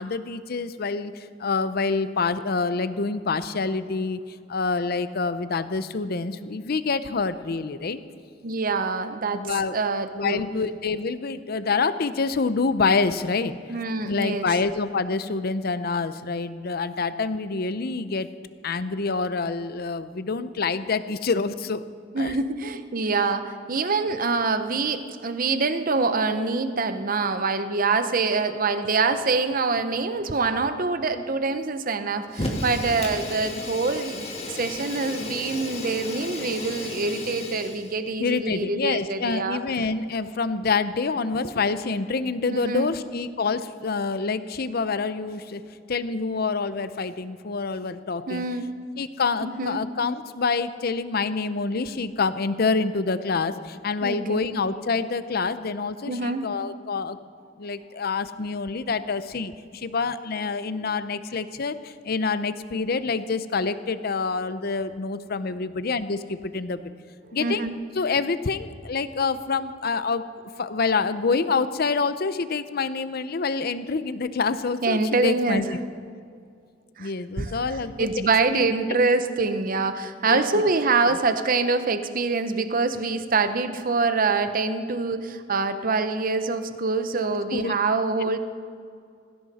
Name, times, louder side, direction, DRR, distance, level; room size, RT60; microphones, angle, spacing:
voice 1, 0.0-4.2 4.5-8.0 9.3-9.8 10.1-13.6 14.0-18.3 18.6-21.8 22.2-22.4 38.2-45.6 45.9-48.4 49.0-57.2 57.6-66.8 67.3-67.6 68.0-70.2 70.6-75.8 77.0-78.7 80.3-80.6 81.1-81.2 87.2-87.7 88.2-88.3, left 4 dB, 55° left, 13 dB, 0.7 m, -27 dB
voice 2, 8.4-9.4 9.7-10.5 13.7-14.5 22.1-39.6 42.5-42.9 48.3-48.7 49.4-49.8 54.0-54.4 56.1-56.5 67.2-67.7 74.8-75.6 77.0-77.1 77.4-77.5 78.0-88.4, right 4 dB, 50° right, 9 dB, 0.8 m, -25 dB
Fire, 32.3-37.9, left 2 dB, 35° left, 2.2 m, -33 dB
19.0 x 16.0 x 4.2 m, 2.3 s
head